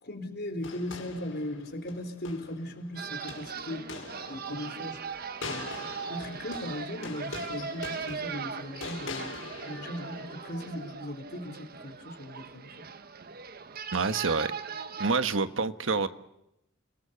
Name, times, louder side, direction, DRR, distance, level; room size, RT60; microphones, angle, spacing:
voice 1, 0.0-3.8 4.3-5.0 5.5-12.9, left 1 dB, 55° left, 6 dB, 4.1 m, -38 dB
sound 1, 0.6-10.9, left 3 dB, 85° left, 5.6 m, -43 dB
sound 2, 3.0-15.2, right 6 dB, 50° right, 1.2 m, -39 dB
voice 2, 13.9-14.5 15.0-16.1, right 4 dB, 85° right, 10 dB, 1.3 m, -27 dB
29.0 x 19.5 x 6.9 m, 0.84 s
head